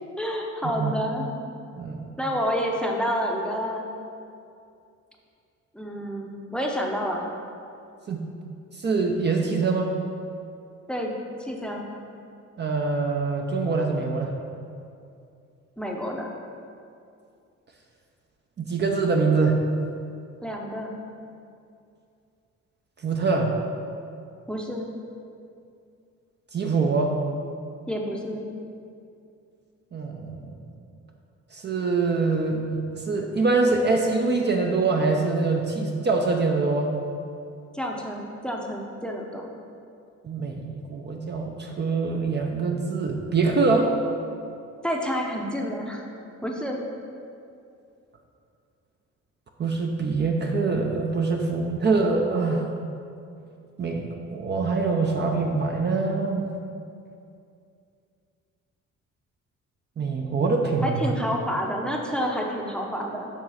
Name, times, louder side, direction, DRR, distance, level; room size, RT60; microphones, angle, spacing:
voice 1, 0.2-1.3 2.2-3.8 5.7-7.2 10.9-11.9 15.8-16.3 20.4-21.0 24.5-24.9 27.9-28.5 37.7-39.5 44.8-46.1 46.4-46.8 60.8-63.3, equal, 5° left, 0 dB, 0.7 m, -29 dB
voice 2, 1.8-2.1 8.1-8.2 8.8-9.9 12.6-14.3 18.6-19.6 23.0-23.5 26.5-27.1 29.9-30.4 31.5-36.9 40.2-43.9 49.6-52.7 53.8-56.5 60.0-61.0, right 4 dB, 35° right, 1 dB, 0.6 m, -24 dB
7.3 x 3.1 x 5.6 m, 2.5 s
cardioid pair, 90°, 30 cm